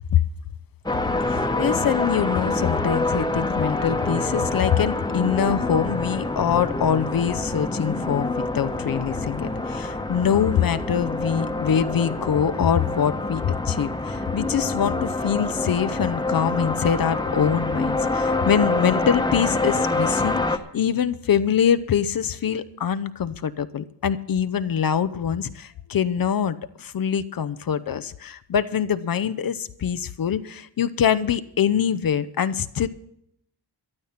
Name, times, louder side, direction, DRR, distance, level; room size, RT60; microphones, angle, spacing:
sound 1, 0.9-20.6, left 2 dB, 10° left, 1.1 m, -26 dB
voice 1, 1.3-32.9, left 8 dB, 55° left, 12 dB, 0.7 m, -24 dB
13.0 x 11.5 x 5.8 m, 0.74 s
cardioid pair, 80°, 41 cm